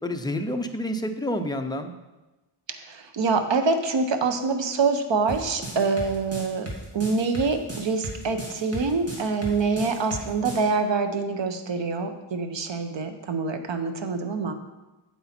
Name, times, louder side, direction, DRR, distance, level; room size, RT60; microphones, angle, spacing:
voice 1, 0.0-1.9, left 1 dB, 10° left, 5 dB, 0.6 m, -29 dB
voice 2, 2.9-6.7 6.9-14.5, right 4 dB, 65° right, 7 dB, 1.0 m, -25 dB
sound 1, 5.3-10.6, right 2 dB, 30° right, 2.0 m, -36 dB
8.2 x 7.9 x 4.4 m, 1.1 s
wide cardioid pair, 135°, 49 cm